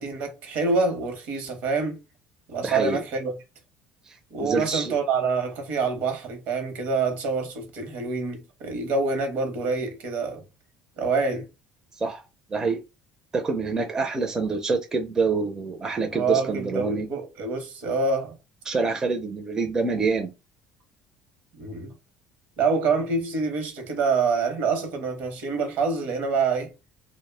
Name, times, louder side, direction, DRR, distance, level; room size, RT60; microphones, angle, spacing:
voice 1, 0.0-2.0 2.5-3.3 4.3-10.4 11.0-11.5 16.1-18.3 21.6-21.9 22.6-26.7, right 4 dB, 65° right, 0.8 m, -26 dB
voice 2, 2.6-3.0 4.4-4.9 12.0-12.2 12.5-12.8 13.3-17.1 18.7-20.3, right 4 dB, 20° right, 0.5 m, -26 dB
2.1 x 2.0 x 3.2 m
cardioid pair, 115°, 3 cm